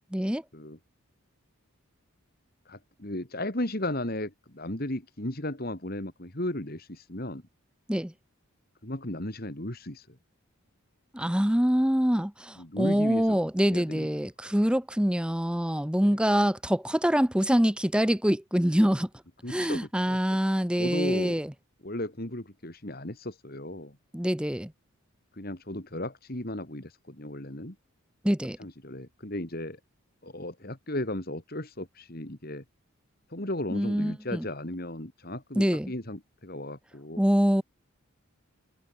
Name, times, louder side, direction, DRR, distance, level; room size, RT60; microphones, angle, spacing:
voice 1, 0.1-0.4 7.9-8.1 11.1-19.1 19.5-21.5 24.1-24.7 28.2-28.6 33.7-34.4 35.6-35.9 37.2-37.6, equal, 5° right, 0.7 m, -25 dB
voice 2, 2.7-7.4 8.8-10.2 12.6-13.4 13.7-14.1 16.1-16.2 19.4-20.2 20.8-21.4 21.8-24.0 25.3-27.8 28.6-29.8 30.2-32.6 33.3-37.2, left 1 dB, 45° left, 2.7 m, -35 dB
head